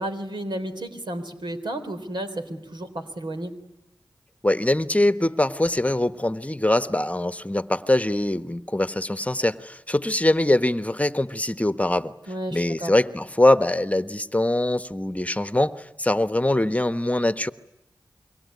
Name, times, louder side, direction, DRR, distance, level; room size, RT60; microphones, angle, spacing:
voice 1, 0.0-3.5 12.3-12.9, right 1 dB, 80° right, 6 dB, 3.6 m, -32 dB
voice 2, 4.4-12.1 12.5-17.5, left 1 dB, 20° left, 11 dB, 1.2 m, -23 dB
26.5 x 23.5 x 9.6 m, 0.85 s
cardioid pair, 45°, 8 cm